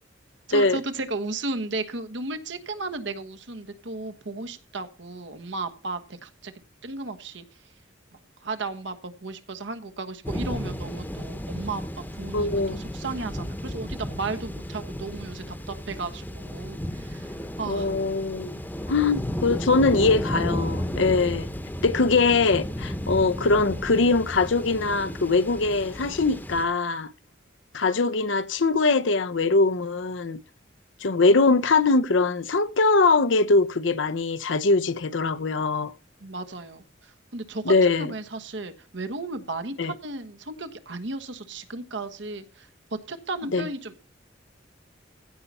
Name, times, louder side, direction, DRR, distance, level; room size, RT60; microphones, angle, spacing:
voice 1, 0.5-6.5 6.8-7.4 8.4-17.9 36.2-42.7 43.1-44.2, right 3 dB, 65° right, 1.3 m, -34 dB
sound 1, 10.2-26.6, equal, 10° left, 1.0 m, -33 dB
voice 2, 12.3-12.8 17.7-18.6 18.9-21.5 21.8-27.1 27.7-30.4 31.0-35.9 37.6-38.1 39.8-39.9 43.5-43.7, left 3 dB, 75° left, 0.8 m, -22 dB
15.5 x 5.6 x 4.2 m
head